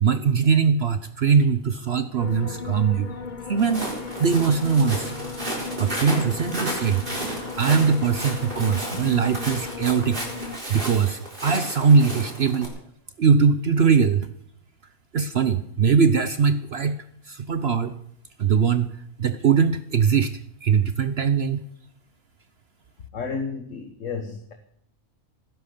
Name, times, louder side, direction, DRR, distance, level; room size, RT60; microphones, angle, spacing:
voice 1, 0.0-3.1 3.5-3.9 4.2-5.1 5.8-7.1 7.5-10.2 10.7-12.7 13.2-14.3 15.1-17.0 17.2-17.9 18.4-18.9 19.2-21.6, right 6 dB, 55° right, 12 dB, 0.9 m, -21 dB
sound 1, 2.2-10.6, left 5 dB, 40° left, 1.0 m, -36 dB
Walk footsteps, 3.6-12.7, right 1 dB, 35° right, 4.1 m, -33 dB
voice 2, 23.1-24.5, left 5 dB, 60° left, 6 dB, 1.7 m, -32 dB
17.5 x 10.5 x 6.7 m, 0.68 s
omnidirectional pair, 1.5 m